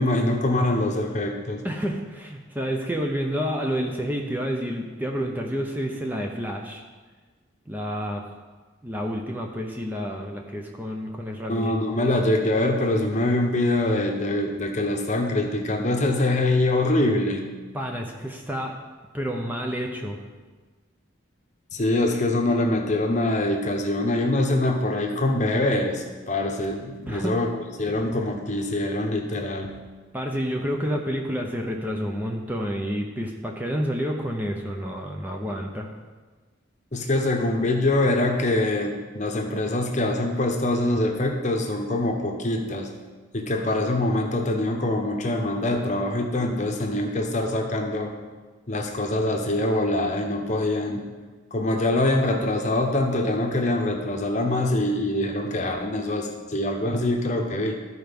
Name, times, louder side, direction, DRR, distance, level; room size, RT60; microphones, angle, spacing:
voice 1, 0.0-1.6 11.5-17.5 21.7-29.8 36.9-42.9 43.3-48.1 48.7-51.1 51.5-57.8, left 1 dB, 35° left, 3 dB, 0.9 m, -24 dB
voice 2, 1.6-6.8 7.7-8.3 8.8-11.7 17.7-18.8 19.1-20.2 27.1-27.3 30.1-35.9, equal, 10° right, 1 dB, 0.6 m, -29 dB
13.0 x 4.6 x 5.2 m, 1.4 s
head